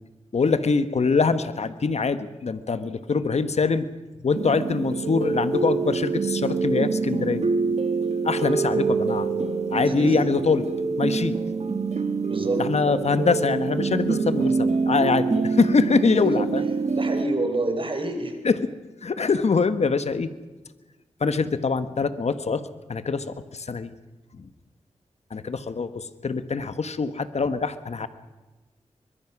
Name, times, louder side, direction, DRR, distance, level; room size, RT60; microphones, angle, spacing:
voice 1, 0.3-3.9 4.2-7.5 8.2-9.3 9.7-10.7 11.0-11.4 12.6-16.6 18.4-18.7 19.0-20.3 21.2-22.6 22.9-23.9 24.4-24.5 25.3-28.1, left 4 dB, 65° left, 11 dB, 1.4 m, -24 dB
sound 1, 4.3-17.2, right 4 dB, 65° right, 2.1 m, -25 dB
voice 2, 9.9-10.2 12.3-12.6 16.2-16.4 16.9-18.4, right 2 dB, 45° right, 5 dB, 4.9 m, -27 dB
23.5 x 22.0 x 6.1 m, 1.2 s
wide cardioid pair, 65°, 12 cm